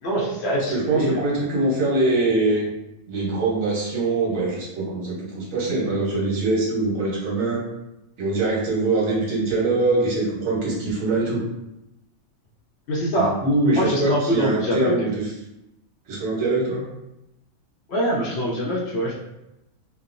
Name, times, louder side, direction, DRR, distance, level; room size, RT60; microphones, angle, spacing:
voice 1, 0.0-1.2 12.9-13.3 13.7-15.1 17.9-19.1, equal, 65° left, -4 dB, 0.7 m, -24 dB
voice 2, 0.7-2.6 3.1-7.6 8.2-11.4 13.1-15.3 16.1-16.9, right 2 dB, 75° right, -4 dB, 1.3 m, -23 dB
2.9 x 2.1 x 2.5 m, 0.90 s
omnidirectional pair, 1.4 m